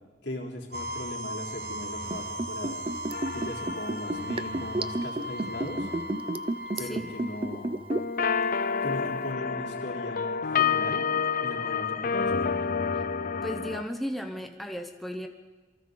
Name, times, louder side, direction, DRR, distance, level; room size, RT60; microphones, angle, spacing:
voice 1, 0.2-2.8 3.3-5.9 6.8-7.9 8.8-11.1 11.4-12.7, left 1 dB, 70° left, -2 dB, 3.7 m, -38 dB
sound 1, 0.7-8.5, equal, 65° right, 1.4 m, -38 dB
Liquid, 2.1-8.2 8.5-8.6, right 2 dB, 30° right, 0.7 m, -31 dB
sound 2, 3.1-5.2 7.9-13.8, left 6 dB, 50° left, 0.6 m, -29 dB
voice 2, 13.4-15.3, equal, ahead, 3 dB, 1.0 m, -35 dB
27.5 x 23.5 x 4.0 m, 1.3 s
head